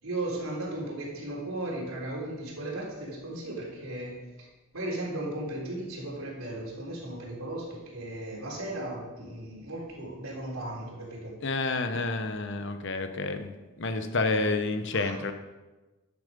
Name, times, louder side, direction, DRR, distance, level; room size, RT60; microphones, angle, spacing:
voice 1, 0.0-4.5 4.7-11.3 14.9-15.1, right 1 dB, 75° right, -3 dB, 3.8 m, -36 dB
voice 2, 11.4-13.5 13.8-15.3, left 3 dB, 55° left, 8 dB, 0.9 m, -29 dB
11.5 x 7.3 x 5.3 m, 1.1 s
head